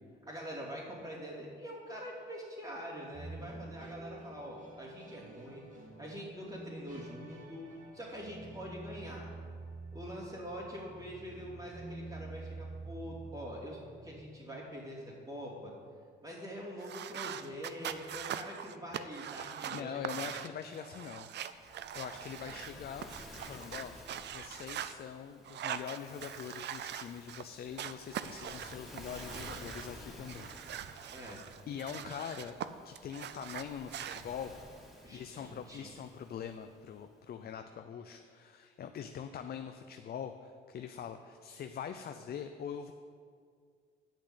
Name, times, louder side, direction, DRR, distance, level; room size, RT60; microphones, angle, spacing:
voice 1, 0.3-5.6 6.0-7.7 7.9-9.3 9.9-15.7 16.2-20.2 22.5-22.6 31.1-31.4 35.0-35.9, equal, 25° right, -11 dB, 3.2 m, -44 dB
sound 1, 3.1-14.3, right 2 dB, 40° right, 2.3 m, -48 dB
sound 2, 16.8-22.7 23.0-24.9 25.4-27.5 27.8-29.9 30.3-32.7 33.0-34.2, right 10 dB, 60° right, 0.5 m, -42 dB
voice 2, 19.7-21.3 21.7-23.1 23.4-23.9 24.3-30.5 30.9-31.0 31.7-32.6 32.8-34.5 35.1-42.9, left 8 dB, 50° left, 7 dB, 0.5 m, -43 dB
Waves surf, 21.4-36.9, equal, ahead, 3.1 m, -53 dB
8.4 x 6.2 x 8.3 m, 2.1 s
cardioid pair, 90°, 20 cm